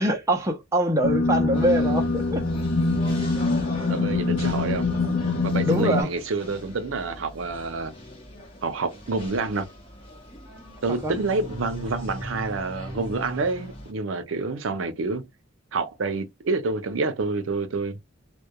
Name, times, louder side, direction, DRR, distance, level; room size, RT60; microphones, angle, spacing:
voice 1, 0.0-2.4 5.7-6.1 10.9-11.1, right 1 dB, 15° right, 0.4 m, -24 dB
sound 1, 1.0-6.0, left 3 dB, 85° left, 0.6 m, -24 dB
sound 2, 1.5-13.9, left 1 dB, 25° left, 0.8 m, -41 dB
voice 2, 3.9-4.9 5.4-7.9 8.6-9.7 10.8-15.3 15.7-18.0, right 3 dB, 70° right, 0.6 m, -28 dB
2.2 x 2.1 x 2.8 m
head